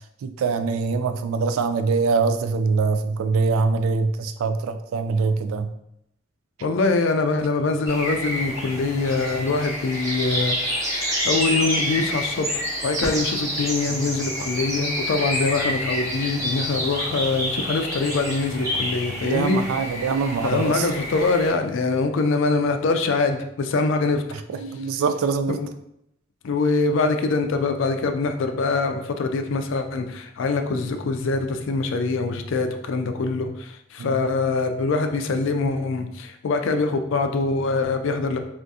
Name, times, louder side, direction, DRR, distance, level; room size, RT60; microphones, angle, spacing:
voice 1, 0.2-5.7 13.9-14.0 19.2-20.9 24.5-25.6 34.0-34.1, right 4 dB, 90° right, 9 dB, 0.3 m, -23 dB
voice 2, 6.6-19.6 20.4-24.2 25.5-25.7 26.4-38.4, left 3 dB, 70° left, 6 dB, 0.3 m, -24 dB
sound 1, 7.9-21.5, equal, 15° right, 0.7 m, -28 dB
2.6 x 2.4 x 3.5 m, 0.78 s
head